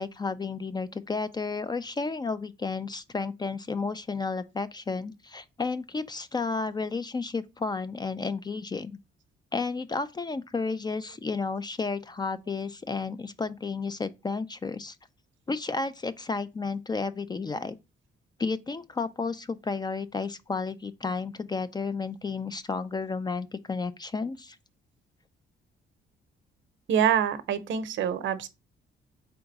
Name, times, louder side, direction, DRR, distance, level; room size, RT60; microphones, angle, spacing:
voice 1, 0.0-9.0 9.5-15.0 15.5-17.8 18.4-24.6, left 4 dB, 20° left, 0.3 m, -32 dB
voice 2, 26.9-28.5, right 8 dB, 70° right, 0.7 m, -25 dB
3.9 x 3.4 x 3.9 m
cardioid pair, 90°, 20 cm